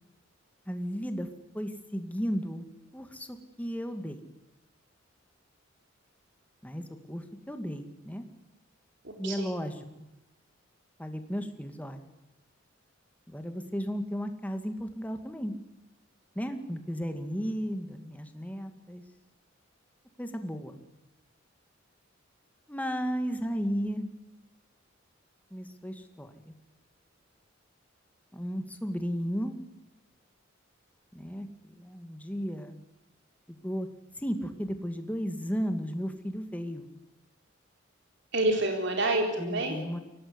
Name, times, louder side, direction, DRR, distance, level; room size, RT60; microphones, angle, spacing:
voice 1, 0.7-1.3 1.5-2.6 2.9-4.3 6.6-8.2 9.2-9.9 11.0-12.1 13.3-15.5 16.4-19.0 20.2-20.8 22.7-24.1 25.5-26.5 28.3-29.6 31.1-32.8 33.5-33.9 34.2-36.9 39.4-40.0, equal, 10° left, 7 dB, 2.1 m, -34 dB
voice 2, 9.0-9.6 38.3-39.8, right 2 dB, 65° right, 3 dB, 4.1 m, -28 dB
24.0 x 18.0 x 9.8 m, 0.95 s
head